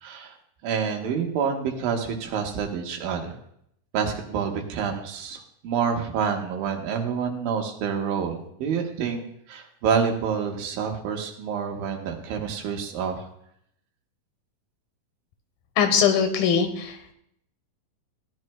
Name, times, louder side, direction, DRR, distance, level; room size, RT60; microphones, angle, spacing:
voice 1, 0.0-0.3 0.6-3.3 3.9-9.2 9.5-13.2, right 6 dB, 85° right, 3 dB, 3.0 m, -28 dB
voice 2, 15.8-17.0, left 7 dB, 85° left, 7 dB, 2.9 m, -21 dB
16.5 x 10.5 x 2.2 m, 0.71 s
omnidirectional pair, 4.1 m